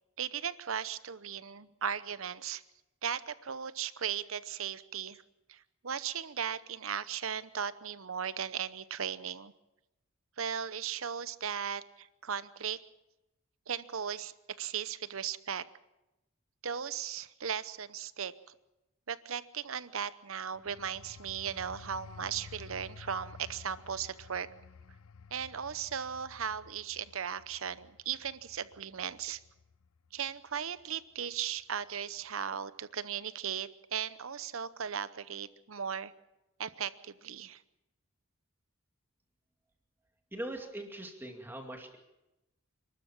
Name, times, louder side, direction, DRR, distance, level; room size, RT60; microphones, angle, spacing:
voice 1, 0.2-2.6 3.0-5.2 5.5-9.5 10.4-12.8 13.7-15.6 16.6-18.3 19.1-24.5 25.3-29.4 30.1-36.1 36.6-37.6, right 8 dB, 75° right, 15 dB, 0.8 m, -37 dB
sound 1, 20.5-30.9 31.3-31.6, left 5 dB, 80° left, 0.7 m, -53 dB
voice 2, 40.3-42.0, right 1 dB, 10° right, 3 dB, 2.4 m, -41 dB
28.5 x 13.0 x 7.2 m, 0.95 s
head